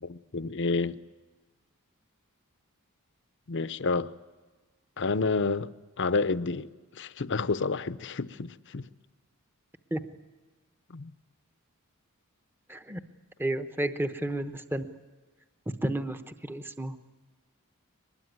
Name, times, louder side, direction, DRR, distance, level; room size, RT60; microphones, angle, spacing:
voice 1, 0.0-1.0 3.5-4.1 5.0-5.7 6.0-8.9 10.9-11.1, left 4 dB, 55° left, 0.7 m, -29 dB
voice 2, 12.7-13.0 13.4-14.9 15.8-17.1, right 1 dB, 10° right, 0.9 m, -32 dB
23.0 x 20.5 x 9.5 m
head